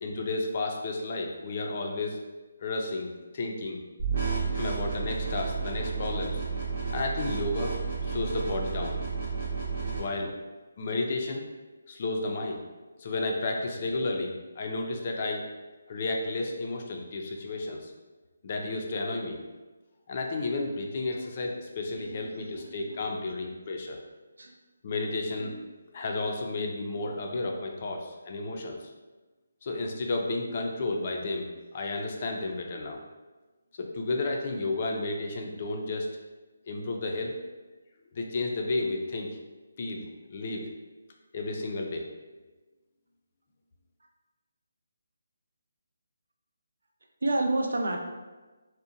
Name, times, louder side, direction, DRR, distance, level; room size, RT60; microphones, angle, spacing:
voice 1, 0.0-2.2 2.6-3.8 4.5-6.4 6.9-7.7 8.0-9.0 10.0-10.3 10.8-11.5 11.9-12.6 13.0-15.4 15.9-17.9 18.4-19.4 20.1-24.0 24.8-25.5 25.9-28.8 29.6-33.0 33.8-36.1 36.7-37.3 38.1-39.3 39.8-40.6 41.3-42.1, left 2 dB, 40° left, 1 dB, 0.4 m, -32 dB
sound 1, 4.0-10.0, right 5 dB, 50° right, 0.7 m, -31 dB
voice 2, 21.9-23.0 24.4-24.5 25.4-25.5 47.2-48.0, right 2 dB, 75° right, 2 dB, 0.4 m, -30 dB
2.7 x 2.0 x 2.5 m, 1.2 s
figure-of-eight pair, 155°, 0 cm